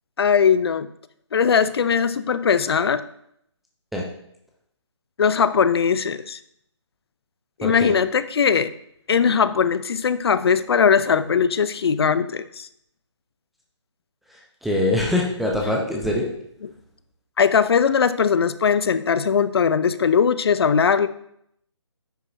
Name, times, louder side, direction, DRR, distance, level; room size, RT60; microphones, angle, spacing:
voice 1, 0.2-0.9 1.3-3.0 5.2-6.4 7.6-8.7 9.1-12.7 17.4-21.1, left 6 dB, 55° left, 14 dB, 0.5 m, -20 dB
voice 2, 7.6-7.9 14.3-16.3, left 1 dB, ahead, -2 dB, 0.3 m, -24 dB
9.7 x 5.5 x 2.6 m, 0.72 s
figure-of-eight pair, 150°, 15 cm